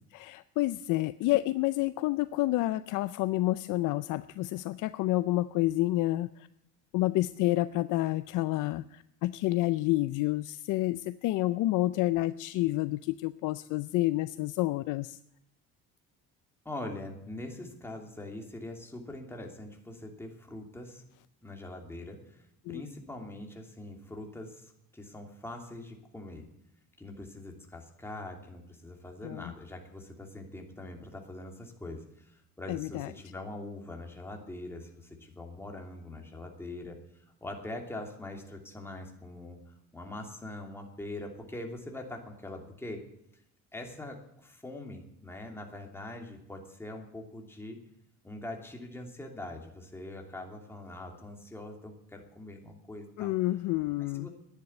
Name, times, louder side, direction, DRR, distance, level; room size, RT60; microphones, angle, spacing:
voice 1, 0.1-6.5 6.9-15.2 22.7-22.8 29.2-29.5 32.7-33.1 53.2-54.3, left 17 dB, 70° left, 14 dB, 0.6 m, -29 dB
voice 2, 16.6-21.0 21.4-26.5 27.0-37.0 37.4-43.0 43.7-47.8 48.2-53.3 54.1-54.3, left 1 dB, 5° left, 2 dB, 2.8 m, -43 dB
11.0 x 10.5 x 9.6 m, 0.78 s
cardioid pair, 140°, 32 cm